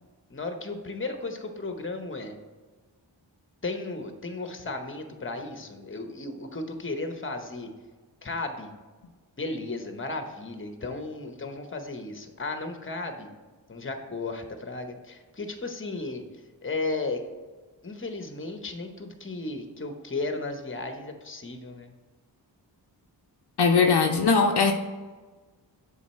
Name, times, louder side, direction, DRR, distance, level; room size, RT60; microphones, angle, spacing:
voice 1, 0.3-2.4 3.6-7.7 8.2-8.7 9.4-13.3 13.7-16.2 16.6-17.2 17.8-21.9, left 3 dB, 30° left, 6 dB, 0.9 m, -34 dB
voice 2, 23.6-24.7, left 5 dB, 65° left, 4 dB, 0.6 m, -20 dB
7.2 x 4.2 x 4.3 m, 1.3 s
wide cardioid pair, 70°, 44 cm